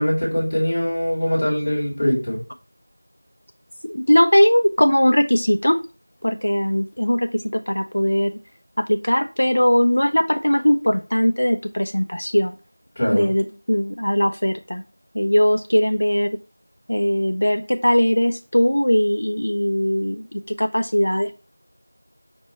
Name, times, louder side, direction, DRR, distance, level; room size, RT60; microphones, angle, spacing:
voice 1, 0.0-2.4 13.0-13.3, equal, 10° left, -9 dB, 0.9 m, -22 dB
voice 2, 3.8-5.8 6.2-8.3 8.8-12.5 13.1-14.8 15.1-16.3 16.9-21.4, equal, 60° left, 6 dB, 0.3 m, -19 dB
5.1 x 2.1 x 4.0 m, 0.33 s
figure-of-eight pair, 180°, 0 cm